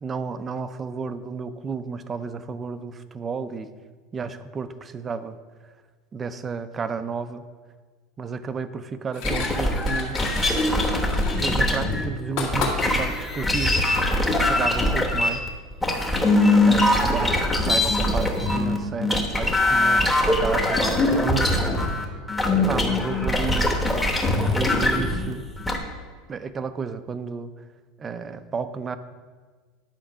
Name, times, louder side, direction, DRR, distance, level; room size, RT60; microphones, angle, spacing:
voice 1, 0.0-3.7 4.1-5.4 6.1-7.4 8.2-10.3 11.4-13.8 14.5-15.5 16.7-21.5 22.5-23.8 24.5-25.5 26.3-27.5 28.0-29.0, right 5 dB, 20° right, 12 dB, 0.4 m, -32 dB
sound 1, 9.1-13.3 14.7-14.8, left 4 dB, 60° left, 1.8 m, -33 dB
sound 2, 9.2-12.1 12.5-25.8, left 2 dB, 10° left, 0.9 m, -22 dB
10.0 x 4.5 x 6.0 m, 1.5 s
supercardioid pair, 155°, 0 cm